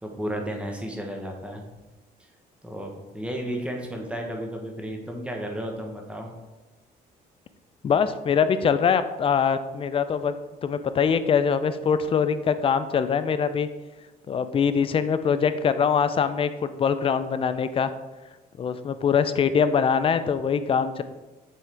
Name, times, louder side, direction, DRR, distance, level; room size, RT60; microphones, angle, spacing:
voice 1, 0.0-1.6 2.6-6.3, equal, 5° right, 1 dB, 1.1 m, -33 dB
voice 2, 7.8-10.3 10.6-13.7 14.3-17.9 18.6-21.0, left 6 dB, 35° left, 11 dB, 0.4 m, -23 dB
7.5 x 3.6 x 3.4 m, 1.1 s
cardioid pair, 110°, 17 cm